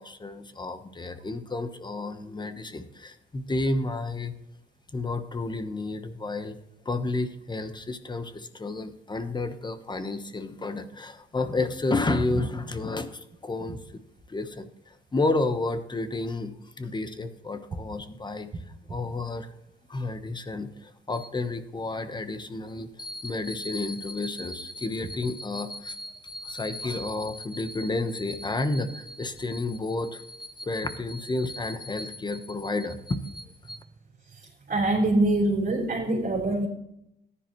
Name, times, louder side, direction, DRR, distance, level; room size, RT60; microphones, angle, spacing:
voice 1, 0.0-4.3 4.9-6.6 6.8-13.8 14.3-18.5 18.9-19.5 19.9-33.8, left 2 dB, 20° left, 10 dB, 1.1 m, -31 dB
voice 2, 34.7-36.7, right 2 dB, 45° right, -4 dB, 3.9 m, -24 dB
14.5 x 10.0 x 3.1 m, 0.79 s
cardioid pair, 90°, 20 cm